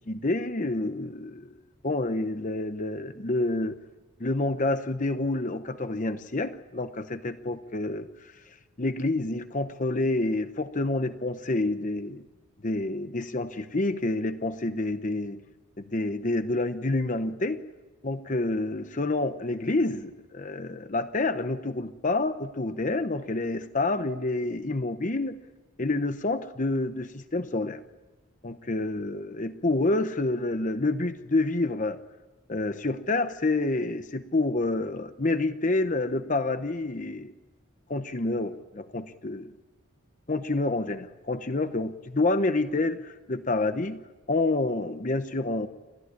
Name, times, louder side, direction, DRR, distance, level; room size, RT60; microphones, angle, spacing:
voice 1, 0.1-1.5 1.8-3.8 4.2-8.3 8.8-12.2 12.6-15.4 15.8-17.6 18.0-25.4 25.8-27.8 28.4-32.0 32.5-37.3 37.9-39.5 40.3-44.0 44.3-45.7, left 2 dB, 35° left, 10 dB, 0.9 m, -28 dB
29.5 x 14.0 x 9.8 m, 1.2 s
head